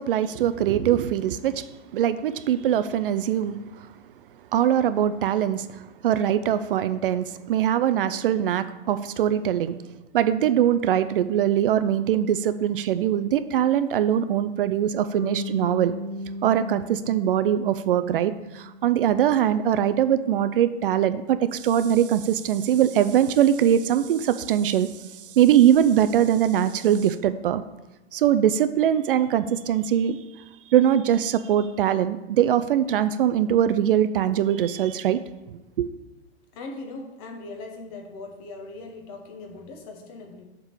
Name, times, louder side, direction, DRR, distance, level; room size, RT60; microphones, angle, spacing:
voice 1, 0.0-3.9 4.5-9.8 10.1-15.9 16.4-24.9 25.3-27.6 28.1-30.2 30.7-35.2 35.8-35.9, right 10 dB, 55° right, 12 dB, 0.4 m, -22 dB
Bass guitar, 15.1-19.2, equal, 10° left, 2.4 m, -36 dB
voice 2, 36.5-40.4, left 3 dB, 30° left, 3 dB, 1.1 m, -39 dB
7.3 x 3.7 x 6.5 m, 1.1 s
hypercardioid pair, 160°, 33 cm